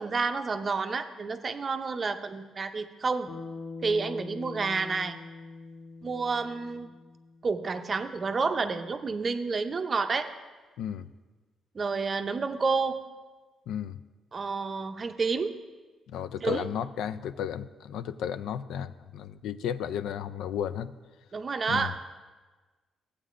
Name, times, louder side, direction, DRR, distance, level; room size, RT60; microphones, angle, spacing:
voice 1, 0.0-3.3 3.8-5.2 6.0-6.9 7.4-10.3 11.7-13.0 14.3-15.6 16.4-16.7 21.3-22.0, right 4 dB, 35° right, 8 dB, 0.5 m, -29 dB
Bass guitar, 3.3-7.7, left 3 dB, 35° left, 0.6 m, -43 dB
voice 2, 13.7-14.0 16.1-20.9 21.7-22.0, left 9 dB, 85° left, 13 dB, 0.3 m, -34 dB
14.5 x 8.4 x 2.5 m, 1.3 s
cardioid pair, 115°, 0 cm